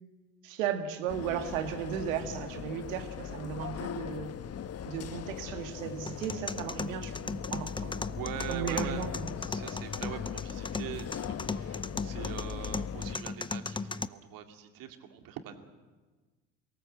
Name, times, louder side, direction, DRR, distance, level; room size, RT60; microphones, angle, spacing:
voice 1, 0.4-4.3 4.8-7.9 8.5-9.3, right 8 dB, 75° right, 8 dB, 2.1 m, -35 dB
sound 1, 1.1-13.2, left 8 dB, 40° left, 1.2 m, -40 dB
sound 2, 6.1-14.0, left 4 dB, 10° left, 0.7 m, -38 dB
voice 2, 7.8-9.0 9.4-15.7, right 9 dB, 60° right, 6 dB, 2.6 m, -43 dB
23.0 x 18.5 x 7.9 m, 1.3 s
hypercardioid pair, 60°, 39 cm